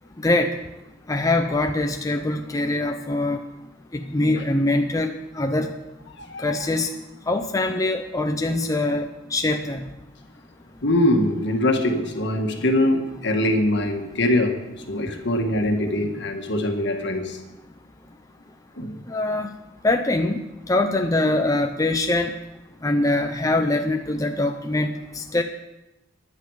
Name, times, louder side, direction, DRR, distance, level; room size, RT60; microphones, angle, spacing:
voice 1, 1.1-3.4 4.1-5.1 5.4-5.7 6.4-6.9 7.3-9.8 19.1-19.5 19.8-20.4 20.7-22.3 22.8-25.4, left 2 dB, 15° left, 4 dB, 0.6 m, -23 dB
voice 2, 6.2-6.5 10.8-14.6 14.9-17.4 18.8-19.0, left 1 dB, 60° left, 4 dB, 1.7 m, -22 dB
14.5 x 10.5 x 4.9 m, 0.98 s
head